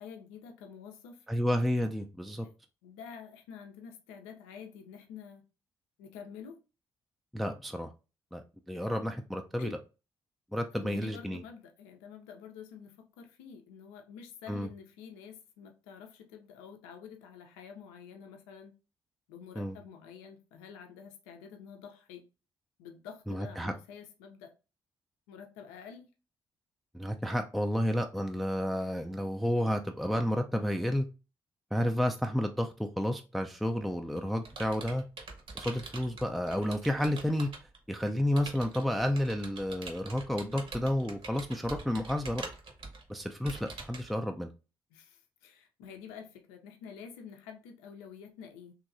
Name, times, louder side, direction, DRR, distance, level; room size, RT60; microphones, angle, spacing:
voice 1, 0.0-1.3 2.4-2.5 2.8-5.4 6.0-6.6 9.6-9.8 10.7-18.7 19.3-22.2 22.8-24.5 25.3-26.1 44.9-48.7, left 7 dB, 75° left, 0.4 m, -48 dB
voice 2, 1.3-2.5 7.3-7.9 8.3-9.7 10.5-11.4 14.5-14.7 19.6-19.8 23.3-23.7 26.9-31.1 31.7-35.0 35.5-42.4 43.1-44.5, equal, ahead, 0.3 m, -31 dB
Computer keyboard, 33.7-37.8 38.4-44.1, right 3 dB, 55° right, 1.0 m, -45 dB
3.0 x 2.7 x 2.5 m
hypercardioid pair, 40°, 11 cm